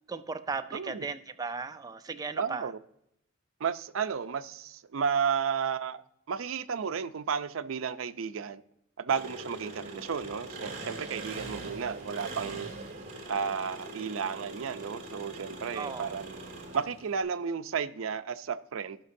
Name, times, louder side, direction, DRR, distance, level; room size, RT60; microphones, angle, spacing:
voice 1, 0.1-2.7 15.7-16.2, right 4 dB, 20° right, 0.3 m, -36 dB
voice 2, 0.7-1.1 2.4-2.8 3.6-6.0 6.3-8.6 9.0-12.7 13.3-16.4 16.7-19.0, right 6 dB, 75° right, 0.5 m, -33 dB
Engine, 9.1-17.2, right 2 dB, 40° right, 2.4 m, -42 dB
16.5 x 5.8 x 2.7 m
head